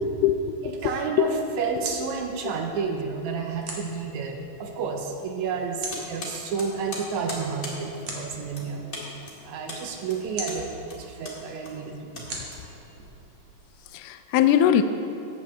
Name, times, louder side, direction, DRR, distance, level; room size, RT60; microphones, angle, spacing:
voice 1, 0.0-0.6 1.2-1.3 13.9-14.8, left 10 dB, 80° left, 8 dB, 2.0 m, -21 dB
voice 2, 0.6-8.8 9.4-12.3, right 5 dB, 75° right, 3 dB, 1.8 m, -31 dB
sound 1, 1.2-13.9, right 2 dB, 55° right, 2.0 m, -43 dB
sound 2, 5.9-13.1, left 2 dB, 30° left, 1.4 m, -40 dB
14.5 x 9.2 x 3.3 m, 2.9 s
omnidirectional pair, 4.0 m